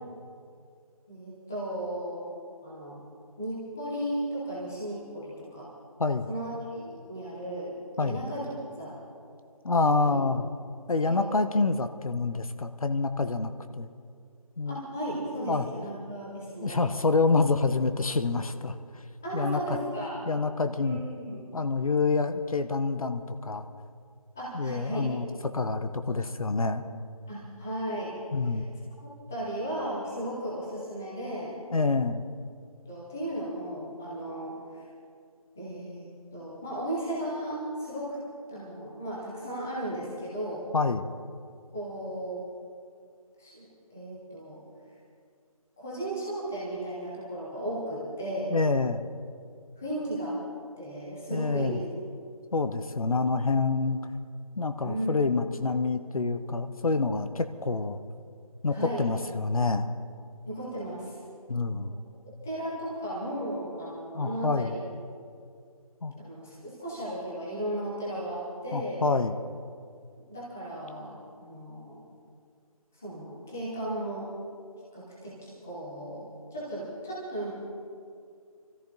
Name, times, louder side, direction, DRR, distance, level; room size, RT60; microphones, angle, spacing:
voice 1, 1.1-2.3 2.6-3.0 3.4-5.7 6.3-7.7 8.0-9.0 10.1-10.2 11.1-11.4 14.7-17.0 19.2-20.2 20.8-21.4 24.3-25.1 27.3-28.1 28.5-28.6 29.3-31.5 32.9-34.9 35.5-36.1 36.3-38.2 38.5-40.6 41.7-42.4 43.4-44.6 45.8-48.5 49.8-50.4 50.8-51.9 54.8-55.1 58.7-59.1 60.5-61.2 62.4-64.9 66.1-69.0 70.3-72.0 72.9-74.3 74.9-77.5, right 1 dB, 5° left, -7 dB, 0.6 m, -35 dB
voice 2, 9.6-10.5 10.9-13.9 14.6-14.8 15.5-15.7 16.6-18.8 19.3-19.8 20.3-21.0 21.5-23.7 24.5-26.8 28.3-28.7 31.7-32.2 40.7-41.1 48.5-49.1 51.3-51.8 52.5-54.0 54.6-58.0 58.6-59.9 61.5-61.9 64.1-64.7 66.0-66.1 68.7-69.4, left 3 dB, 70° left, 9 dB, 1.0 m, -27 dB
22.0 x 14.0 x 3.9 m, 2.3 s
figure-of-eight pair, 170°, 19 cm